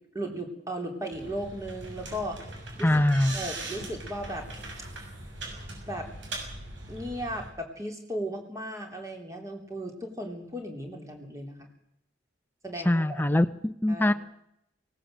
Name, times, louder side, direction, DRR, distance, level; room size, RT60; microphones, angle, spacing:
voice 1, 0.1-2.9 3.3-4.5 5.9-6.1 6.9-11.7 12.6-13.2 13.9-14.1, equal, 15° right, 3 dB, 3.6 m, -36 dB
sound 1, 1.1-7.5, right 2 dB, 80° right, 6.5 m, -40 dB
voice 2, 2.8-3.4 12.8-14.1, left 1 dB, 10° left, 11 dB, 0.8 m, -23 dB
18.5 x 18.0 x 7.8 m, 0.77 s
head